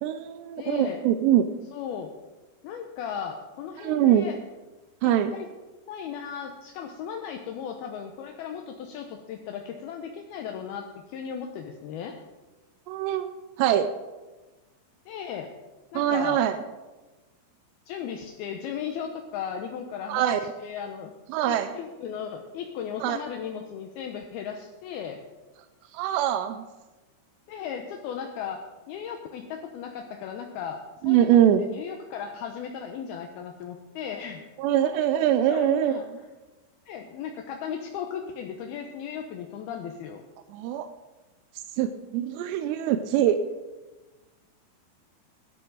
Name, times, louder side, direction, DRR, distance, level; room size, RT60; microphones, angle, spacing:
voice 1, 0.0-1.5 3.8-4.3 5.0-5.3 12.9-13.9 15.9-16.6 20.1-20.4 21.3-21.7 23.0-23.2 25.9-26.6 31.0-31.6 34.6-36.0 40.5-40.9 41.8-43.4, right 11 dB, 80° right, 9 dB, 2.5 m, -23 dB
voice 2, 0.6-1.0 1.7-2.1 2.6-4.4 5.0-5.5 5.9-12.2 15.1-15.5 15.9-16.4 17.9-20.2 20.6-21.1 21.5-25.2 27.5-28.6 28.9-31.3 31.6-34.4 35.5-36.1 36.9-40.2, left 7 dB, 80° left, 3 dB, 2.3 m, -36 dB
17.0 x 12.5 x 3.9 m, 1.2 s
omnidirectional pair, 5.4 m